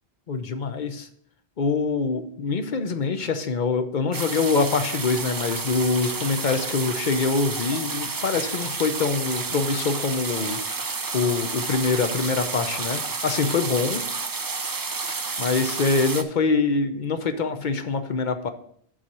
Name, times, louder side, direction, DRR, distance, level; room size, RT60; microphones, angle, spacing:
voice 1, 0.3-1.1 1.6-10.6 11.1-14.0 15.4-18.5, left 4 dB, 50° left, 8 dB, 0.8 m, -24 dB
sound 1, 4.1-16.2, right 4 dB, 35° right, 0.3 m, -30 dB
7.2 x 4.2 x 6.0 m, 0.64 s
omnidirectional pair, 1.1 m